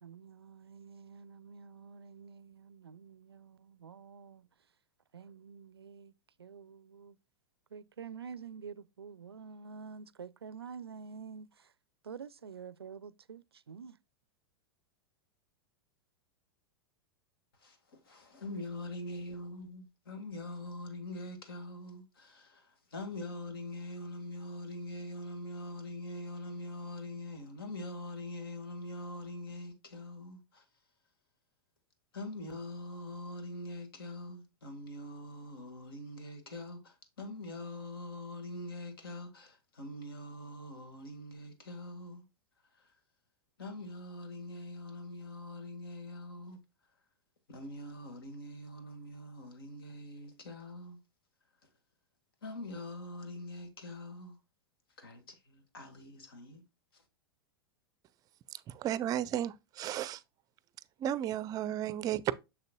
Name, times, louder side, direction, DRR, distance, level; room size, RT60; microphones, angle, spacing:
voice 1, 0.0-4.5 5.1-6.1 6.4-7.2 7.7-11.5 12.0-14.0, right 6 dB, 85° right, 0.4 m, -48 dB
voice 2, 17.6-30.7 32.1-42.2 42.7-42.9 43.6-46.6 47.5-51.0 52.4-54.4 55.0-56.6 56.9-57.0, left 1 dB, 70° left, 1.8 m, -43 dB
voice 3, 58.5-60.2 61.0-62.3, right 11 dB, 30° right, 0.5 m, -34 dB
6.8 x 6.5 x 2.2 m
figure-of-eight pair, 100°, 13 cm